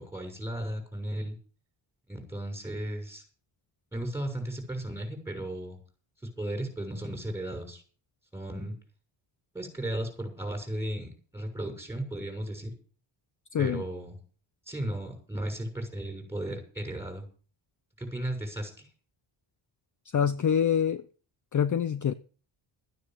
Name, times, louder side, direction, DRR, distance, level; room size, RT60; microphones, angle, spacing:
voice 1, 0.0-1.4 2.1-3.2 3.9-5.8 6.4-7.8 8.3-8.7 9.5-12.7 13.6-14.2 14.7-17.2 18.0-18.9, right 1 dB, 5° right, 6.5 m, -35 dB
voice 2, 13.5-13.8 20.1-21.0 21.5-22.1, left 8 dB, 40° left, 0.6 m, -25 dB
14.0 x 9.5 x 7.6 m
wide cardioid pair, 155°, 49 cm